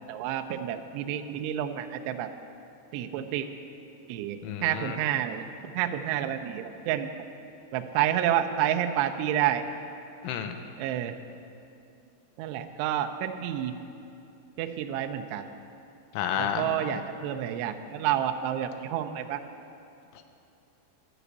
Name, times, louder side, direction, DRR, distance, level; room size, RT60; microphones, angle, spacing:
voice 1, 0.0-2.3 2.9-3.5 4.1-5.5 5.8-7.1 7.7-9.6 10.8-11.1 12.4-13.7 14.6-15.4 16.4-19.4, right 11 dB, 85° right, 6 dB, 2.4 m, -29 dB
voice 2, 4.4-5.0 10.2-10.6 16.2-16.7, left 8 dB, 85° left, 7 dB, 3.1 m, -31 dB
12.0 x 5.0 x 8.1 m, 2.6 s
omnidirectional pair, 5.4 m